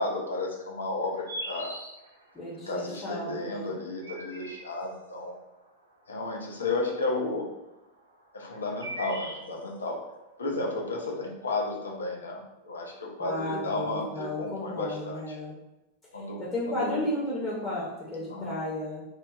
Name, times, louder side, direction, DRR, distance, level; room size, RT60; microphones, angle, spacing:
voice 1, 0.0-1.7 2.7-5.4 6.1-7.5 8.3-10.0 10.4-15.4 16.1-16.4 16.7-17.0 18.3-18.5, left 2 dB, 75° left, 0 dB, 0.5 m, -33 dB
sound 1, 1.0-2.4 3.7-5.1 6.2-7.0 8.0-10.0, right 1 dB, 75° right, 0.3 m, -40 dB
voice 2, 2.3-3.8 13.2-15.5 16.1-19.0, left 1 dB, 15° left, -7 dB, 0.7 m, -33 dB
2.9 x 2.1 x 2.4 m, 0.95 s
figure-of-eight pair, 90°, 0 cm